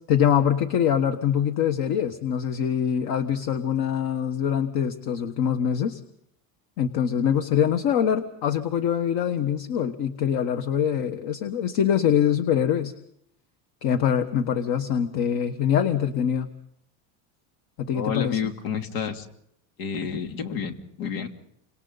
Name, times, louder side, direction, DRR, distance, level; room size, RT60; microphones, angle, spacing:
voice 1, 0.1-6.0 6.8-12.9 13.8-16.5 17.8-18.4, left 8 dB, 50° left, 7 dB, 1.5 m, -24 dB
voice 2, 17.9-19.3 19.8-21.3, left 7 dB, 75° left, 4 dB, 3.0 m, -30 dB
29.0 x 26.5 x 4.1 m, 0.75 s
supercardioid pair, 140°, 47 cm